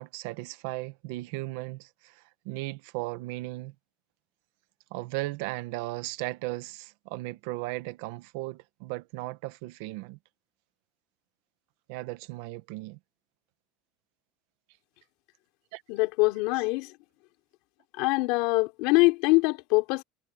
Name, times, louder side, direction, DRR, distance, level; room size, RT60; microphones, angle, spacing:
voice 1, 0.0-3.7 4.9-10.2 11.9-13.0 15.7-15.8, right 19 dB, 65° right, 1.3 m, -36 dB
voice 2, 15.9-17.0 17.9-20.0, left 24 dB, 55° left, 3.5 m, -24 dB
cardioid pair, 175°, 0 cm